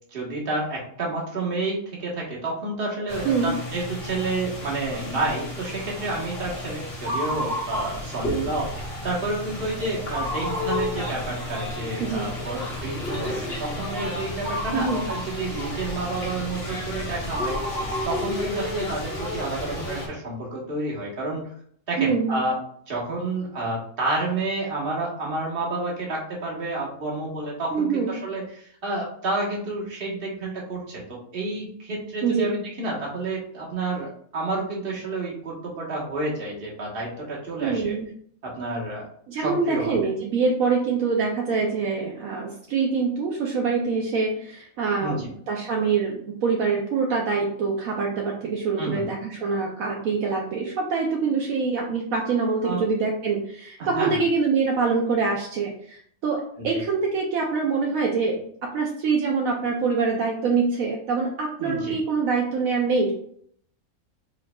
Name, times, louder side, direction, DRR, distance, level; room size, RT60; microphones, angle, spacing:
voice 1, 0.1-21.4 21.9-22.6 22.9-38.0 38.4-39.1 39.3-39.9 45.0-45.3 48.8-49.0 52.6-52.8 53.8-54.2 56.6-56.8 61.6-62.0, right 2 dB, 40° right, -4 dB, 1.4 m, -30 dB
sound 1, 3.1-20.1, left 1 dB, 45° left, 1.4 m, -31 dB
voice 2, 14.7-15.1 22.0-22.4 27.7-28.1 32.2-32.5 37.6-38.1 39.3-63.1, right 4 dB, 70° right, -1 dB, 1.1 m, -25 dB
4.6 x 4.0 x 2.3 m, 0.63 s
omnidirectional pair, 1.5 m